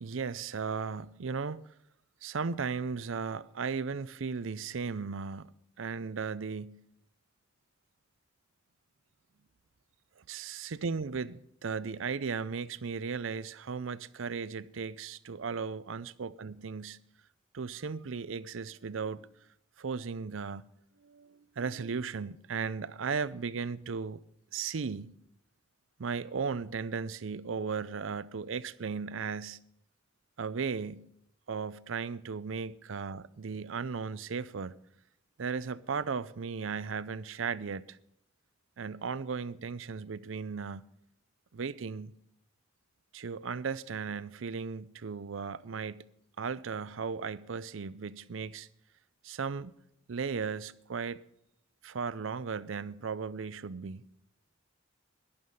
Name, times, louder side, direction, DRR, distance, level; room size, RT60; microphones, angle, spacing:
voice 1, 0.0-1.6 2.2-5.5 5.8-6.8 10.2-17.0 17.5-19.3 19.8-20.7 21.0-24.2 24.5-25.2 26.0-29.6 30.4-31.1 31.5-34.8 35.4-38.0 38.8-40.9 41.5-42.1 43.1-46.1 46.4-48.7 49.2-49.7 50.1-51.2 51.8-54.0, right 5 dB, 75° right, 0.6 m, -36 dB
12.0 x 11.5 x 5.4 m
head